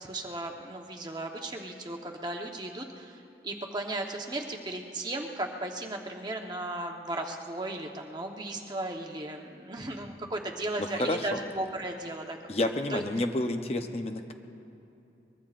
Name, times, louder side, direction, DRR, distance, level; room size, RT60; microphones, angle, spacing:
voice 1, 0.0-13.0, right 1 dB, 25° right, 2 dB, 1.0 m, -36 dB
voice 2, 10.8-11.4 12.5-14.3, left 1 dB, 35° left, 6 dB, 0.7 m, -30 dB
23.5 x 21.5 x 2.5 m, 2.8 s
head